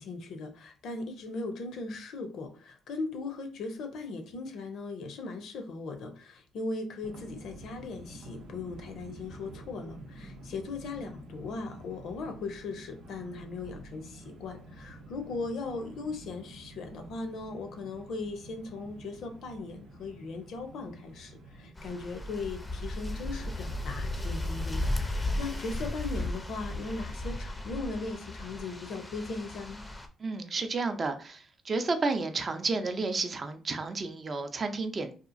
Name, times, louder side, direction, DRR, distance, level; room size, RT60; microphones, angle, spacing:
voice 1, 0.0-29.8, left 3 dB, 75° left, 6 dB, 0.6 m, -38 dB
sound 1, 7.0-21.7, right 1 dB, 85° right, 0.6 m, -49 dB
sound 2, 21.8-30.1, left 1 dB, 15° left, 0.4 m, -35 dB
voice 2, 30.2-35.1, right 3 dB, 40° right, 7 dB, 0.4 m, -31 dB
2.8 x 2.3 x 2.5 m, 0.38 s
cardioid pair, 90°, 0 cm